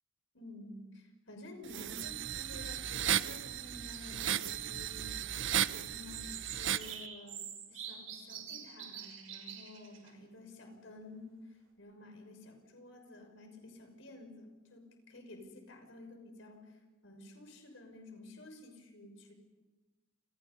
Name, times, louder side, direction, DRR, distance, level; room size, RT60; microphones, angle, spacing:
voice 1, 0.3-11.3 11.8-16.8 17.0-19.3, left 2 dB, 70° left, 4 dB, 6.2 m, -52 dB
sound 1, 1.7-7.0, right 10 dB, 65° right, 0.8 m, -35 dB
sound 2, 3.7-5.0 5.9-10.1, right 9 dB, 90° right, 5.9 m, -46 dB
30.0 x 28.0 x 5.5 m, 1.2 s
head